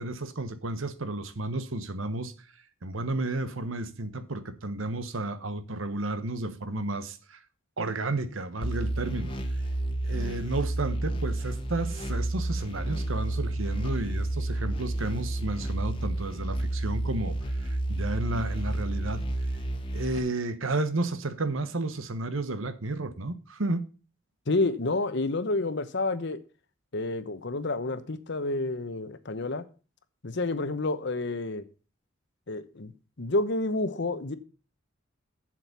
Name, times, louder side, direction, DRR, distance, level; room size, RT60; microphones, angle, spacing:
voice 1, 0.0-2.3 2.8-7.4 7.8-9.4 10.0-19.2 19.9-23.9, right 2 dB, 75° right, 1.1 m, -32 dB
sound 1, 8.6-20.2, right 1 dB, 25° left, 1.4 m, -30 dB
voice 2, 24.5-26.4 26.9-29.6 30.2-31.6 32.5-32.9 33.2-34.4, left 2 dB, 60° left, 1.0 m, -29 dB
7.7 x 7.5 x 6.8 m
head